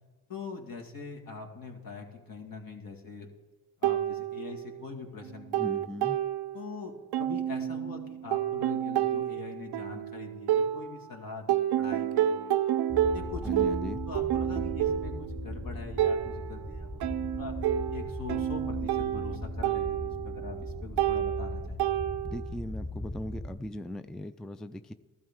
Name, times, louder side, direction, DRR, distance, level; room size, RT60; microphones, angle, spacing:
voice 1, 0.3-3.3 3.8-5.6 6.5-12.7 13.1-13.7 14.0-17.0 17.3-17.6 17.9-21.8, left 4 dB, 60° left, 2 dB, 2.1 m, -43 dB
sound 1, 3.8-4.9 5.2-6.8 7.1-11.1 11.5-22.5, right 10 dB, 75° right, 0.5 m, -30 dB
voice 2, 5.6-6.2 13.4-14.0 22.2-24.9, left 1 dB, ahead, 11 dB, 0.4 m, -39 dB
sound 2, 12.9-23.6, left 1 dB, 20° left, 1.4 m, -39 dB
14.0 x 12.0 x 3.6 m, 1.2 s
supercardioid pair, 55°, 39 cm